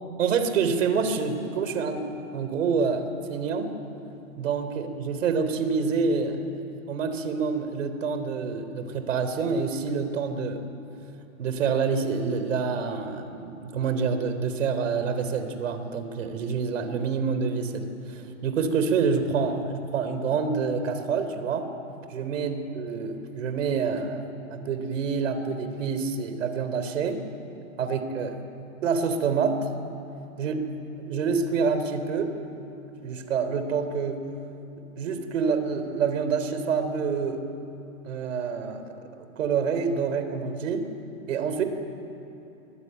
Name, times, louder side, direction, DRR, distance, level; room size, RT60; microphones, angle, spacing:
voice 1, 0.2-2.1 2.3-3.0 3.3-3.8 4.4-6.4 6.9-10.6 11.4-21.7 22.1-24.2 24.5-27.3 27.8-28.4 28.8-29.6 30.4-30.6 31.1-32.3 33.0-34.2 35.0-37.4 38.0-38.9 39.2-40.9 41.3-41.6, right 5 dB, 60° right, 8 dB, 3.6 m, -27 dB
24.0 x 21.0 x 9.2 m, 2.8 s
hypercardioid pair, 155°, 42 cm